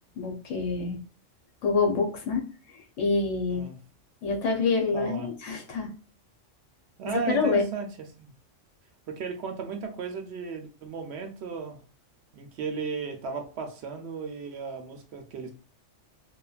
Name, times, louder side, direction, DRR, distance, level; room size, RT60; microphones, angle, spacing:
voice 1, 0.2-1.0 1.6-2.4 3.0-3.6 4.2-5.9 7.1-7.7, left 4 dB, 70° left, 1.1 m, -26 dB
voice 2, 3.5-3.8 4.9-5.3 7.0-7.9 8.2-8.3 9.1-11.8 12.3-15.5, right 5 dB, 65° right, 0.8 m, -35 dB
3.1 x 2.2 x 2.3 m
omnidirectional pair, 1.3 m